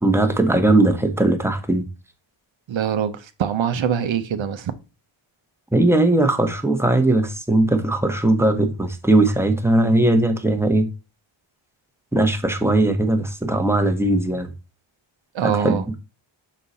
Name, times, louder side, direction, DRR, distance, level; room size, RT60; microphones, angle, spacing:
voice 1, 0.0-1.9 5.7-10.9 12.1-14.5 15.4-15.8, right 2 dB, 5° right, 1.0 m, -19 dB
voice 2, 2.7-4.7 15.3-15.8, right 8 dB, 70° right, 0.8 m, -23 dB
6.5 x 3.8 x 4.1 m
cardioid pair, 85°, 48 cm